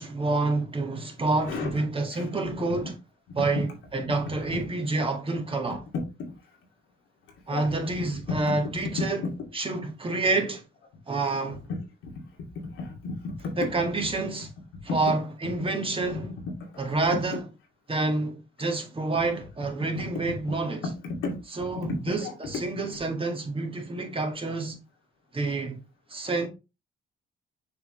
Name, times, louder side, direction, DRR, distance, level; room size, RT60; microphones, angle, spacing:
voice 1, 0.0-2.9 3.4-3.7 3.9-5.8 7.5-9.3 9.5-10.6 11.1-11.6 13.6-14.5 14.9-16.3 16.8-17.4 17.9-20.8 21.5-24.8 25.3-25.8 26.1-26.5, right 3 dB, 25° right, 1.9 m, -28 dB
voice 2, 8.3-8.8 11.7-11.8 12.0-12.1 12.6-13.7 14.0-14.1 16.6-16.7 19.9-20.0 20.8-21.4 21.8-22.3, left 3 dB, 90° left, 2.3 m, -33 dB
6.8 x 4.6 x 3.2 m
cardioid pair, 90°, 20 cm